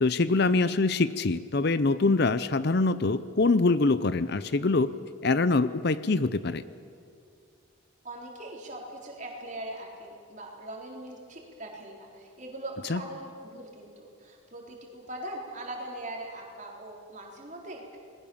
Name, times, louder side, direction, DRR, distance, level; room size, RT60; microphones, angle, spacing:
voice 1, 0.0-4.9 5.2-6.6 12.9-13.0, left 3 dB, 50° left, 15 dB, 0.6 m, -24 dB
voice 2, 8.0-18.0, right 1 dB, 35° right, 0 dB, 4.0 m, -41 dB
27.5 x 20.0 x 7.2 m, 2.3 s
head